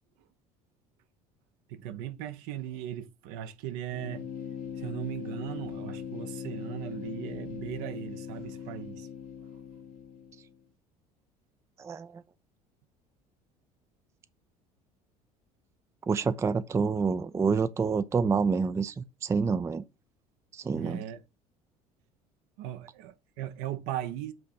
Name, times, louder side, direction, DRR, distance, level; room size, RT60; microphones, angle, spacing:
voice 1, 1.7-4.2 4.8-9.1 20.7-21.2 22.6-24.3, right 11 dB, 55° right, 0.7 m, -38 dB
sound 1, 3.9-10.6, left 8 dB, 45° left, 0.9 m, -40 dB
voice 2, 11.8-12.2 16.1-19.8 20.5-21.0, right 5 dB, 15° right, 0.4 m, -28 dB
7.7 x 3.0 x 5.4 m
figure-of-eight pair, 60°, 20 cm